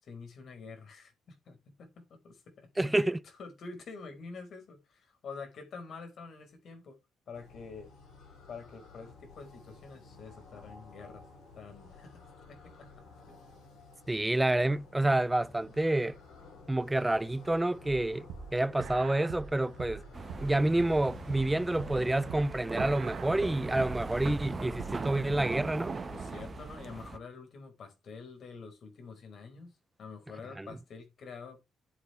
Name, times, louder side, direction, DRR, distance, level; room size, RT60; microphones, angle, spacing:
voice 1, 0.0-2.7 3.4-7.0 7.3-7.9 8.5-11.3 11.5-12.2 12.5-13.3 26.1-29.7 30.0-31.6, left 4 dB, 60° left, 4.9 m, -47 dB
voice 2, 2.8-3.2 14.1-16.2 16.7-20.0 20.4-25.9 30.6-30.7, right 1 dB, 10° right, 0.6 m, -28 dB
sound 1, 7.3-26.6, left 3 dB, 80° left, 7.4 m, -52 dB
sound 2, 18.0-25.6, right 6 dB, 75° right, 1.9 m, -44 dB
sound 3, 20.1-27.2, right 4 dB, 35° right, 1.4 m, -40 dB
11.5 x 8.5 x 3.4 m
cardioid pair, 90°, 0 cm